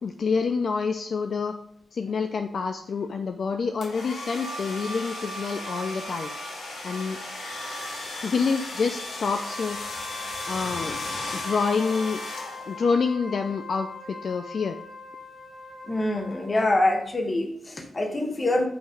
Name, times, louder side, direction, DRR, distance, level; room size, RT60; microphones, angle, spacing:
voice 1, 0.0-1.6 1.9-6.4 6.8-7.2 8.2-9.8 10.5-11.0 11.3-12.2 12.7-14.8, left 5 dB, 60° left, 6 dB, 0.4 m, -27 dB
sound 1, 3.8-12.9, left 1 dB, 90° left, 1.8 m, -35 dB
Wind instrument woodwind instrument, 9.3-16.7, left 3 dB, 10° right, 1.3 m, -42 dB
voice 2, 15.9-18.7, left 1 dB, 30° left, 4 dB, 1.1 m, -25 dB
7.8 x 3.0 x 5.0 m, 0.68 s
wide cardioid pair, 110°, 0 cm